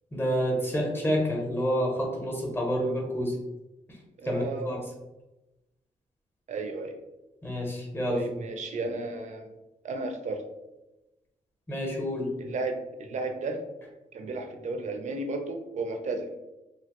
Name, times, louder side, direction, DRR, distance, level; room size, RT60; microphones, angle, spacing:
voice 1, 0.1-3.3 4.2-4.8 7.4-8.2 11.7-12.3, equal, 15° left, -1 dB, 0.7 m, -28 dB
voice 2, 4.2-4.8 6.5-7.0 8.1-9.5 9.8-10.4 12.4-13.6 14.1-16.4, right 2 dB, 55° right, 4 dB, 0.5 m, -33 dB
2.9 x 2.4 x 2.9 m, 1.0 s
wide cardioid pair, 140°, 15 cm